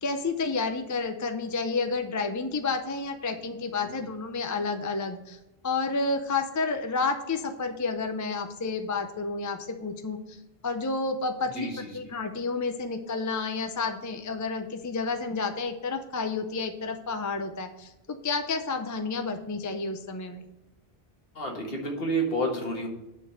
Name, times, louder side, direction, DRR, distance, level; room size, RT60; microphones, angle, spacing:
voice 1, 0.0-10.4 10.6-20.5, left 4 dB, 25° left, 7 dB, 0.4 m, -30 dB
voice 2, 11.6-11.9 21.3-22.9, right 1 dB, 60° left, 1 dB, 1.7 m, -29 dB
9.0 x 3.9 x 6.5 m, 0.93 s
omnidirectional pair, 1.1 m